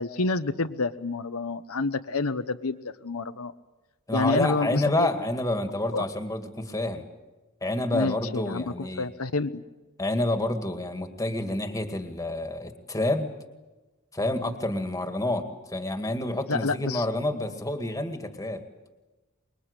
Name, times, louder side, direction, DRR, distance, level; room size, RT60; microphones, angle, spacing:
voice 1, 0.0-3.5 4.1-5.1 5.9-6.0 7.9-9.5 16.5-17.0, left 3 dB, 80° left, 8 dB, 1.0 m, -28 dB
voice 2, 4.1-7.0 7.6-9.1 10.0-13.3 14.1-18.6, left 1 dB, 15° left, 7 dB, 2.1 m, -28 dB
25.0 x 22.5 x 8.3 m, 1.1 s
head